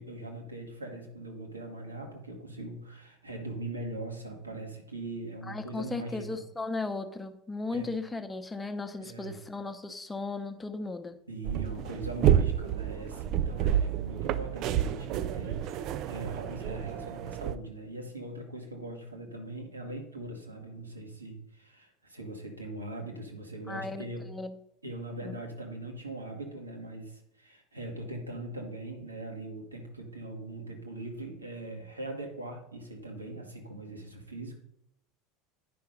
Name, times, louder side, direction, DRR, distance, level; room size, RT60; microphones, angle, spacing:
voice 1, 0.0-6.4 7.7-7.9 9.0-9.4 11.3-24.3 24.8-34.5, right 2 dB, 85° right, 1 dB, 1.7 m, -41 dB
voice 2, 5.5-11.2 23.7-24.5 25.2-25.3, left 3 dB, 15° left, 8 dB, 0.9 m, -36 dB
sound 1, 11.4-17.6, right 10 dB, 45° right, 0.4 m, -29 dB
9.5 x 5.7 x 5.2 m, 0.77 s
figure-of-eight pair, 75°, 0 cm